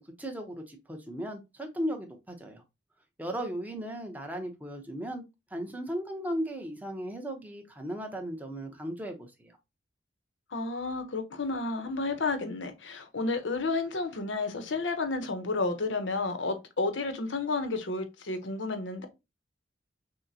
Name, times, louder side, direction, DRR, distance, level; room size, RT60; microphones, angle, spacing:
voice 1, 0.0-2.6 3.2-5.2 5.5-9.6, equal, 10° right, 0.7 m, -36 dB
voice 2, 10.5-19.1, left 3 dB, 80° left, 0.8 m, -31 dB
6.2 x 2.2 x 2.7 m
head